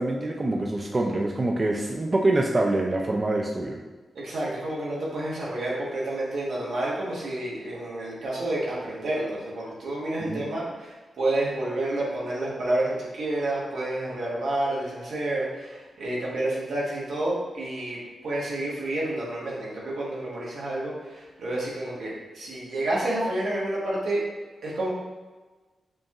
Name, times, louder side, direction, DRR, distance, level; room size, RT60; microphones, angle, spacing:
voice 1, 0.0-3.8 10.2-10.4, right 2 dB, 25° right, 1 dB, 0.3 m, -25 dB
voice 2, 4.1-24.2 24.6-24.9, right 1 dB, 85° right, -6 dB, 1.2 m, -29 dB
5.1 x 2.4 x 2.9 m, 1.3 s
wide cardioid pair, 135°, 0 cm